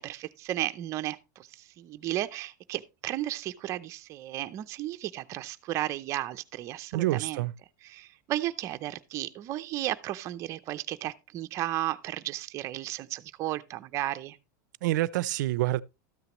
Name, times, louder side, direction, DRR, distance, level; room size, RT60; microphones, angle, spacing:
voice 1, 0.0-7.4 7.8-14.4, right 14 dB, 30° right, 0.6 m, -34 dB
voice 2, 6.9-7.5 14.8-15.8, right 16 dB, 75° right, 0.5 m, -27 dB
13.0 x 9.1 x 3.0 m
supercardioid pair, 165°, 10 cm